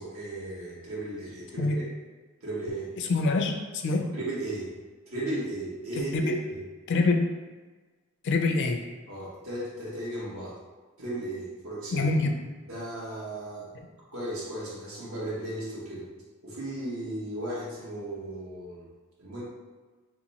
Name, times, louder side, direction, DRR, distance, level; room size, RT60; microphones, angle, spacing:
voice 1, 0.0-1.9 2.4-2.9 3.9-4.7 5.1-6.6 9.1-10.6 11.0-12.1 12.7-13.7 14.1-16.1 16.4-18.9 19.2-19.4, right 1 dB, 80° right, -6 dB, 1.1 m, -35 dB
voice 2, 3.1-4.1 6.1-6.3 6.9-7.3 8.2-8.9 11.9-12.3, left 3 dB, 55° left, 4 dB, 0.4 m, -25 dB
2.9 x 2.2 x 4.0 m, 1.3 s
head